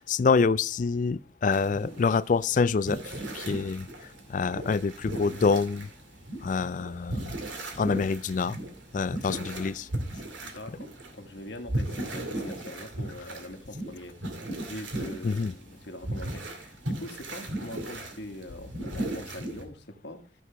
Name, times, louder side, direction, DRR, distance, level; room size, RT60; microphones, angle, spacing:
voice 1, 0.0-5.9 6.4-7.3 7.8-8.6 8.9-9.9 15.2-15.5, left 4 dB, 45° left, 0.3 m, -26 dB
sound 1, 1.5-19.6, right 1 dB, 85° right, 2.3 m, -37 dB
voice 2, 10.4-10.9 11.1-14.1 14.6-20.2, left 1 dB, 70° left, 1.4 m, -43 dB
13.5 x 6.2 x 3.3 m
head